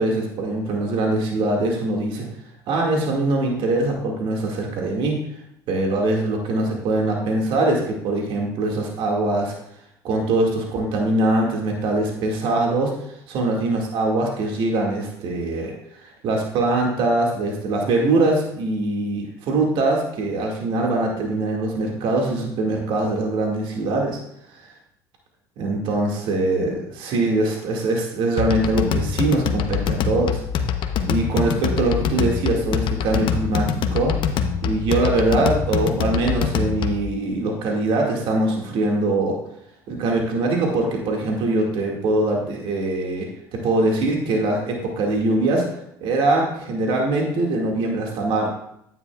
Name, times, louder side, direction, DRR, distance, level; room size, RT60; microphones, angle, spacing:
voice 1, 0.0-2.3 2.7-5.2 5.7-9.6 10.0-24.2 24.5-24.7 25.6-30.4 31.1-34.2 34.6-39.4 39.9-45.7 46.0-48.5, right 2 dB, 60° right, 0 dB, 2.0 m, -22 dB
sound 1, 28.4-37.1, left 7 dB, 60° left, 0.8 m, -24 dB
9.9 x 9.0 x 2.3 m, 0.76 s
supercardioid pair, 85°, 10 cm